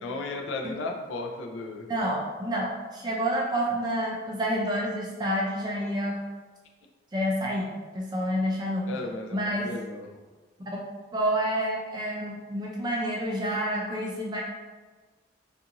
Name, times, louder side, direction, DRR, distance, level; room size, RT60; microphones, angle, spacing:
voice 1, 0.0-1.9 8.9-10.1, left 3 dB, 85° left, 3 dB, 0.4 m, -35 dB
voice 2, 1.9-6.2 7.1-8.9 9.3-9.7 11.1-14.4, equal, 20° right, -2 dB, 0.4 m, -28 dB
2.5 x 2.4 x 2.8 m, 1.3 s
head